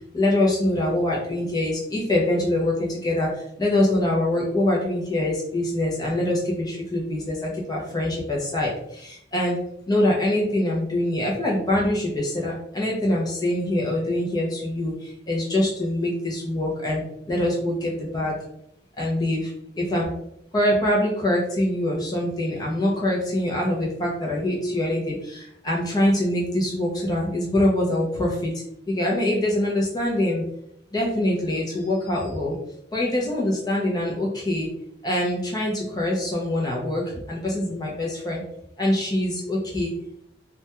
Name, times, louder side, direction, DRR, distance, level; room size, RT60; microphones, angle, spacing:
voice 1, 0.1-3.3 3.6-9.6 9.9-17.0 17.3-18.3 19.0-19.5 19.8-20.1 20.5-28.5 28.9-30.4 30.9-32.6 32.9-34.7 35.0-38.4 38.8-39.9, left 1 dB, 20° left, -3 dB, 0.4 m, -24 dB
2.2 x 2.1 x 2.8 m, 0.76 s
head